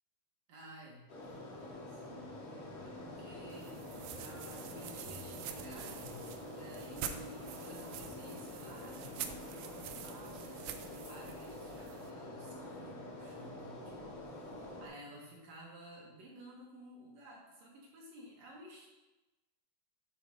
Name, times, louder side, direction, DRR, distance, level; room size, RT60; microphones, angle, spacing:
voice 1, 0.5-2.4 2.8-3.7 4.2-18.9, right 1 dB, 60° right, -3 dB, 2.1 m, -54 dB
sound 1, 1.1-14.9, left 1 dB, 45° left, 2.0 m, -47 dB
sound 2, 3.5-12.1, right 9 dB, 80° right, 1.9 m, -47 dB
sound 3, 4.0-4.7 5.0-5.6 6.0-6.6 7.0-7.1 8.0-8.1 9.0-9.1 10.0-10.1 11.0-11.2, left 2 dB, 85° left, 2.8 m, -55 dB
6.8 x 3.9 x 6.4 m, 1.1 s
omnidirectional pair, 3.9 m